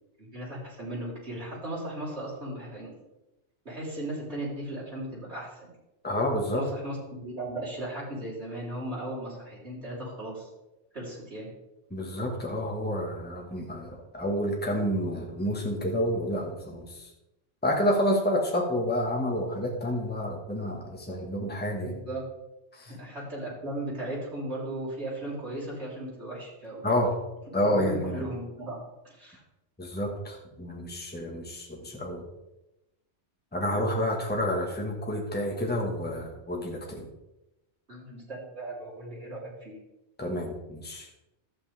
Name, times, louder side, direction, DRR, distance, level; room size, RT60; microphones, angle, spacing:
voice 1, 0.2-3.0 3.7-5.8 6.5-10.5 10.9-11.5 21.8-22.2 22.8-26.8 27.7-28.8 29.0-29.4 37.9-39.7, right 1 dB, 65° right, -6 dB, 4.1 m, -37 dB
voice 2, 6.0-6.6 11.9-17.1 17.6-22.0 22.7-23.0 26.8-27.1 27.5-28.2 29.8-32.2 33.5-37.1 40.2-41.1, equal, 10° left, -1 dB, 1.4 m, -29 dB
12.0 x 8.5 x 3.4 m, 0.96 s
omnidirectional pair, 1.2 m